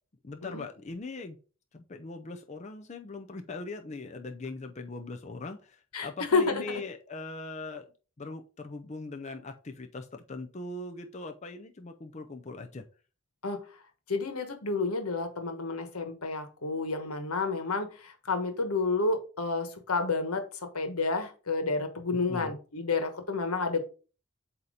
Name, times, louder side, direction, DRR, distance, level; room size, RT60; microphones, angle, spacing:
voice 1, 0.2-1.4 1.7-7.9 8.2-12.8 22.1-22.6, left 3 dB, 30° left, 5 dB, 0.5 m, -40 dB
voice 2, 5.9-6.6 13.4-13.6 14.1-20.4 20.7-23.8, left 3 dB, 90° left, 7 dB, 1.3 m, -30 dB
8.1 x 2.9 x 4.9 m, 0.36 s
head